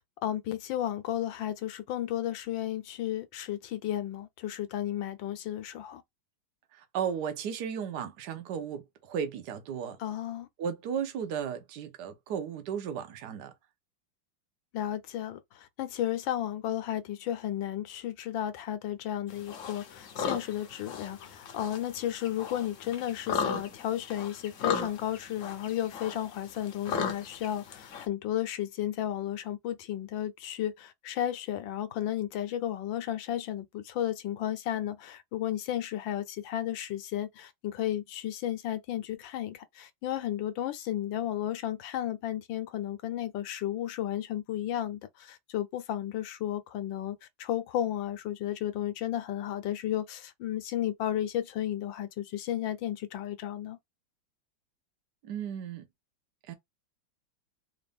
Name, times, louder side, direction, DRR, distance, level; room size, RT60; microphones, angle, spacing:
voice 1, 0.2-6.0 10.0-10.5 14.7-53.8, left 12 dB, 75° left, 1.4 m, -33 dB
voice 2, 6.7-10.0 10.6-13.5 55.2-55.8 56.5-56.6, right 7 dB, 65° right, 1.2 m, -35 dB
sound 1, 19.3-28.1, left 6 dB, 55° left, 0.9 m, -37 dB
3.6 x 2.6 x 3.4 m
omnidirectional pair, 2.1 m